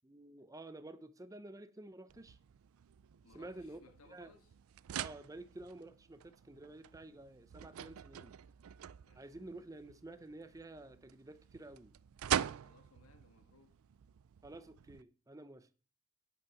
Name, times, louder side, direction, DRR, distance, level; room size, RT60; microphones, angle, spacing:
voice 1, 0.0-2.4 3.3-3.8 4.1-4.3 5.0-8.3 9.1-11.9 14.4-15.7, right 2 dB, 15° right, 0.5 m, -51 dB
sound 1, 2.1-15.0, right 10 dB, 80° right, 0.4 m, -44 dB
voice 2, 3.2-4.5 9.0-9.5 12.6-13.8, left 3 dB, 80° left, 1.4 m, -65 dB
9.4 x 5.9 x 5.9 m
head